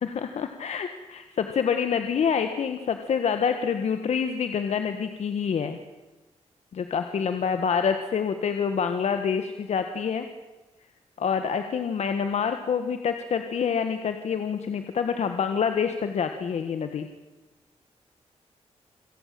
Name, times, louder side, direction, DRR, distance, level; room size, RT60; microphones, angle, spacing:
voice 1, 0.0-5.8 6.7-10.3 11.2-17.1, left 6 dB, 70° left, 7 dB, 1.6 m, -27 dB
27.5 x 17.5 x 7.7 m, 1.1 s
cardioid pair, 105°, 12 cm